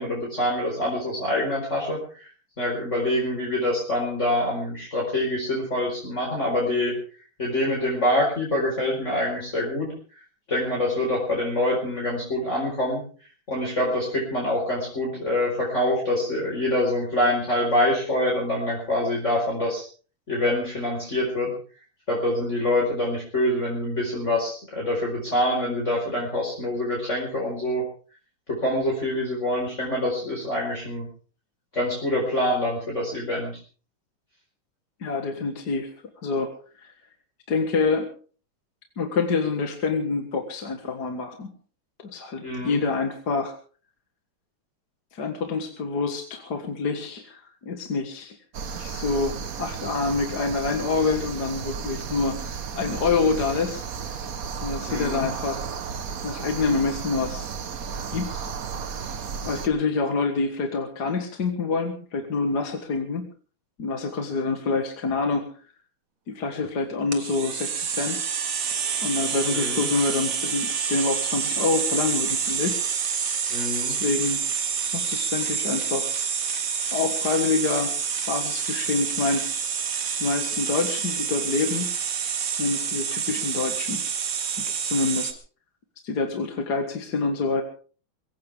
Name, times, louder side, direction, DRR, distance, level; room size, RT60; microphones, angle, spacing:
voice 1, 0.0-2.3 2.6-7.0 7.4-9.9 10.5-13.0 13.5-19.9 20.3-21.5 22.1-27.8 28.5-31.1 31.7-33.5 42.4-42.8 54.9-55.3 69.5-69.9 73.5-74.0, left 1 dB, 30° left, -3 dB, 5.0 m, -25 dB
voice 2, 35.0-35.9 36.2-36.5 36.8-36.9 37.5-38.1 39.0-41.5 42.0-43.5 45.1-48.4 48.8-54.2 54.6-55.7 56.2-57.5 58.1-58.4 59.1-59.2 59.4-63.3 63.8-65.5 66.3-68.2 69.0-72.8 73.8-74.4 74.9-76.1 76.9-77.9 78.3-79.5 80.2-81.9 82.6-84.0 84.6-85.4 86.0-87.6, left 4 dB, 50° left, 5 dB, 2.2 m, -27 dB
sound 1, 48.5-59.7, right 6 dB, 50° right, 1.3 m, -33 dB
sound 2, 67.1-85.3, right 7 dB, 85° right, 2.8 m, -28 dB
23.0 x 16.5 x 3.5 m, 0.40 s
omnidirectional pair, 2.4 m